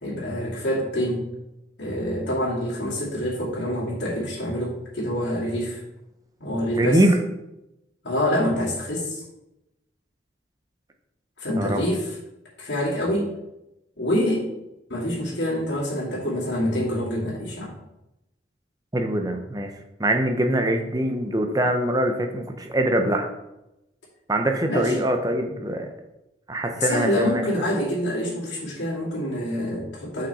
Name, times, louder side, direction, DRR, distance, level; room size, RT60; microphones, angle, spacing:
voice 1, 0.0-1.3 1.8-5.8 6.4-7.0 8.0-9.2 11.4-12.1 12.6-13.3 14.0-14.5 14.9-17.7 24.7-24.9 26.8-30.3, equal, 75° left, -6 dB, 2.4 m, -26 dB
voice 2, 6.8-7.1 11.6-11.8 18.9-19.7 20.0-23.3 24.3-25.9 26.5-27.6, right 1 dB, 20° right, 4 dB, 0.7 m, -23 dB
5.9 x 5.7 x 4.1 m, 0.92 s
head